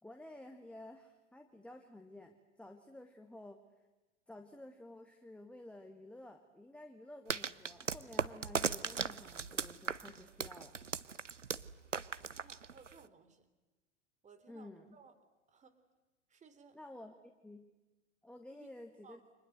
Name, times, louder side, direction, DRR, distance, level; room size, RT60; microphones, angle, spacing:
voice 1, 0.0-3.6 4.3-10.7 14.5-15.0 16.7-17.1 17.4-17.7 18.2-19.2, left 1 dB, 5° left, 4 dB, 1.7 m, -52 dB
sound 1, 7.3-13.1, right 5 dB, 85° right, 0.8 m, -38 dB
voice 2, 12.3-13.5 14.2-15.2 15.5-15.8 16.3-16.8 18.5-18.7 19.0-19.2, right 5 dB, 20° right, 9 dB, 3.2 m, -60 dB
29.5 x 26.0 x 7.9 m, 1.1 s
figure-of-eight pair, 90°, 36 cm